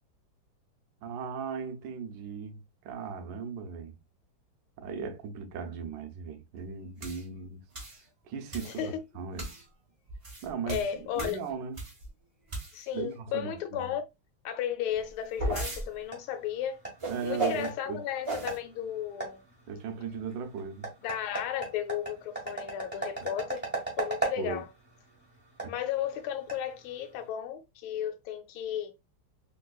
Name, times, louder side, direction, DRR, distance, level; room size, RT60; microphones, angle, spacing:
voice 1, 1.0-4.0 4.8-7.6 8.2-9.5 10.4-11.8 12.9-13.9 17.1-18.0 19.7-20.9 24.4-24.6 25.6-25.7, right 6 dB, 70° right, 1.2 m, -37 dB
sound 1, 7.0-7.2 7.7-8.0 8.5-8.8 9.4-9.6 10.1-12.1 12.5-13.0 14.9-15.8 17.0-17.7 18.2-18.6, right 2 dB, 55° right, 0.3 m, -35 dB
voice 2, 10.7-11.4 12.7-14.0 14.4-16.8 17.2-19.4 21.0-23.6 24.0-24.7 25.7-28.9, left 10 dB, 85° left, 1.4 m, -34 dB
sound 2, 15.4-27.3, right 3 dB, 5° right, 0.9 m, -39 dB
3.3 x 3.0 x 2.3 m
omnidirectional pair, 2.3 m